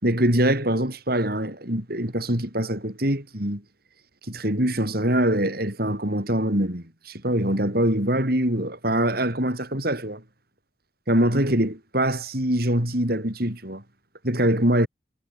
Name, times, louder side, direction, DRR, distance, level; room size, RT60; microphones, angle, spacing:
voice 1, 0.0-3.6 4.3-10.2 11.1-13.8 14.2-14.9, right 1 dB, 50° right, 5.7 m, -23 dB
head